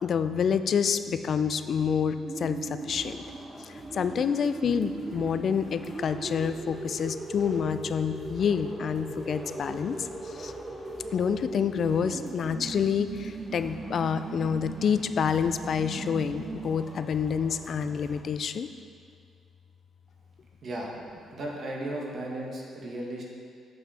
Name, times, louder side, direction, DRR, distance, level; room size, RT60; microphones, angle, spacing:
voice 1, 0.0-3.2 3.6-10.5 11.1-18.7, left 7 dB, 55° left, 11 dB, 0.3 m, -28 dB
sound 1, 2.1-17.0, right 2 dB, 30° right, 0.6 m, -39 dB
sound 2, 2.8-18.2, equal, 15° left, 1.2 m, -49 dB
voice 2, 20.6-20.9 21.3-23.2, right 1 dB, 50° right, -2 dB, 1.4 m, -35 dB
7.9 x 5.8 x 4.2 m, 2.3 s
cardioid pair, 90°, 0 cm